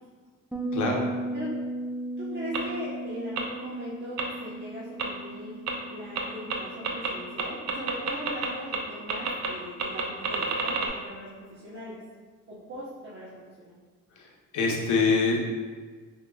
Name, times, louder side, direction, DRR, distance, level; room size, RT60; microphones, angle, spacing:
Bass guitar, 0.5-9.9, right 1 dB, 5° right, 0.5 m, -37 dB
voice 1, 0.7-1.1 14.2-15.4, left 4 dB, 75° left, 0 dB, 0.9 m, -25 dB
voice 2, 2.2-5.6 5.8-12.0 12.5-13.8, equal, 40° right, -10 dB, 1.1 m, -39 dB
sound 1, 2.5-2.6 3.4-3.5 4.2-4.3 5.0-5.1 5.7-5.8 6.1-6.2 6.5-6.6 6.8-7.1 7.4-8.5 8.7-8.8 9.1-9.5 9.8-10.9, right 6 dB, 65° right, 0.6 m, -28 dB
5.0 x 2.8 x 2.3 m, 1.5 s
cardioid pair, 90°, 30 cm